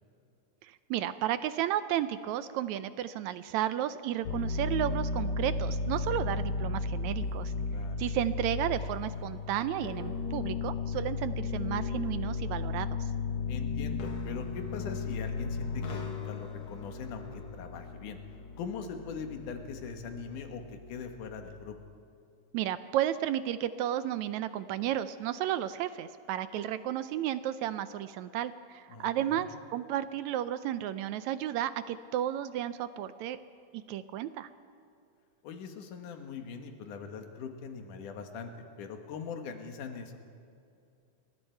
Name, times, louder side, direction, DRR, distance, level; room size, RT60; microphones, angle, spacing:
voice 1, 0.7-7.5 8.0-12.9 22.5-33.4 33.7-34.5, right 11 dB, 75° right, 12 dB, 1.8 m, -33 dB
sound 1, 4.2-21.6, left 4 dB, 60° left, 2.6 m, -35 dB
voice 2, 7.7-8.0 13.5-18.2 18.6-21.8 28.9-29.4 35.4-40.2, left 6 dB, 80° left, 5 dB, 3.0 m, -41 dB
29.5 x 21.5 x 4.6 m, 2.5 s
omnidirectional pair, 3.6 m